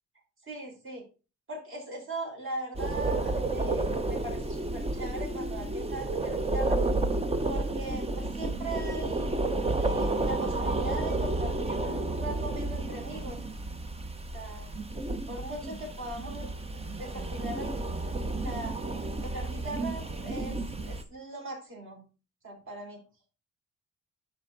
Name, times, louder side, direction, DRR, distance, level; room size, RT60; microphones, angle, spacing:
voice 1, 0.4-1.0 1.5-6.8 7.5-9.3 9.7-13.4 14.3-14.7 15.3-16.5 17.0-17.7 18.4-18.8 19.2-20.6 20.8-22.1 22.4-23.0, right 2 dB, 40° right, -1 dB, 5.0 m, -40 dB
sound 1, 2.7-21.0, right 2 dB, 20° right, 0.9 m, -31 dB
12.0 x 4.5 x 4.0 m, 0.34 s
cardioid pair, 130°, 31 cm